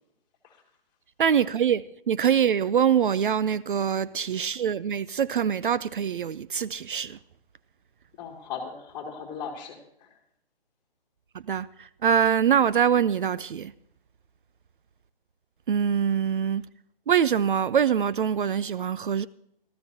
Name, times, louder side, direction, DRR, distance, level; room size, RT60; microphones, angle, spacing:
voice 1, 1.2-7.2 11.5-13.7 15.7-16.7 17.1-19.3, right 8 dB, 60° right, 0.4 m, -24 dB
voice 2, 8.2-10.2, left 6 dB, 15° left, 2.7 m, -38 dB
16.5 x 14.0 x 2.7 m
figure-of-eight pair, 145°, 29 cm